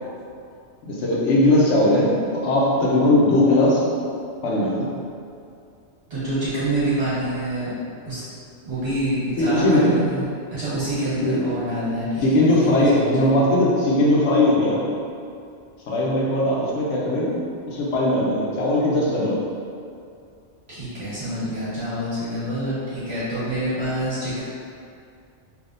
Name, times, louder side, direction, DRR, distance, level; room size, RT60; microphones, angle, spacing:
voice 1, 0.8-3.8 4.4-4.9 9.4-9.9 11.2-11.4 12.2-14.8 15.9-19.4, left 1 dB, 75° left, -4 dB, 0.9 m, -19 dB
voice 2, 6.1-7.7 8.1-8.2 8.6-10.2 10.5-13.3 20.7-24.4, right 1 dB, 60° right, -12 dB, 1.7 m, -26 dB
3.4 x 2.7 x 2.5 m, 2.4 s
omnidirectional pair, 1.3 m